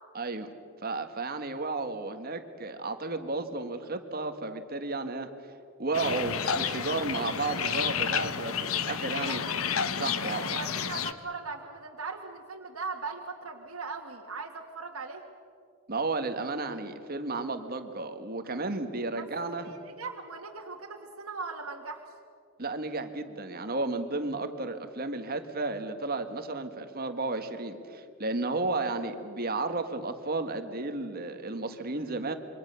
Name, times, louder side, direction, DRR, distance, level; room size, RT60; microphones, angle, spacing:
voice 1, 0.2-0.5 0.8-5.3 5.8-9.5 10.0-10.6 15.9-19.7 22.6-32.3, right 3 dB, 45° right, 8 dB, 1.7 m, -33 dB
sound 1, 5.9-11.1, left 7 dB, 80° left, 1.1 m, -31 dB
voice 2, 9.1-9.6 10.2-15.2 19.2-19.3 19.6-22.1, right 4 dB, 90° right, 0 dB, 1.8 m, -39 dB
27.5 x 24.0 x 6.9 m, 2.4 s
head